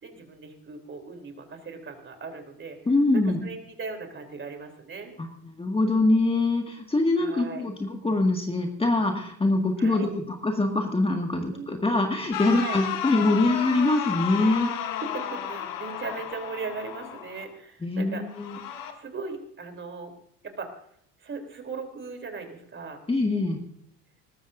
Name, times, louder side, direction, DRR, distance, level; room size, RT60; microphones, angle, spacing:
voice 1, 0.0-2.8 3.1-5.1 7.2-7.6 9.8-10.1 11.5-11.8 12.6-12.8 15.1-18.2 19.0-20.1 20.4-20.7 21.2-23.0, right 4 dB, 30° right, 6 dB, 3.2 m, -38 dB
voice 2, 2.9-3.4 5.2-14.7 17.8-18.6 23.1-23.6, left 2 dB, 15° left, 3 dB, 1.8 m, -24 dB
sound 1, 12.3-17.4 18.3-18.9, left 9 dB, 60° left, 2.1 m, -33 dB
20.5 x 13.0 x 2.6 m, 0.67 s
hypercardioid pair, 85°, 38 cm